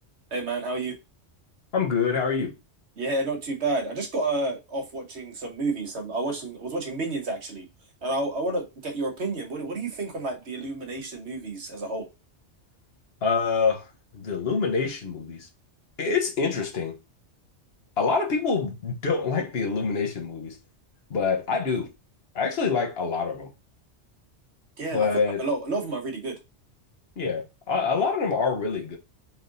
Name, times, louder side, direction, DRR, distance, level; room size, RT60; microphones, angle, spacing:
voice 1, 0.3-1.0 3.0-7.7 8.0-12.1 24.8-25.1 25.4-26.4, right 2 dB, 70° right, 1.4 m, -30 dB
voice 2, 1.7-2.5 13.2-13.9 14.1-15.5 16.0-17.0 18.0-20.6 21.1-21.9 22.3-23.5 24.9-25.4 27.2-29.0, left 5 dB, 60° left, 1.2 m, -26 dB
4.2 x 3.6 x 2.5 m
omnidirectional pair, 1.2 m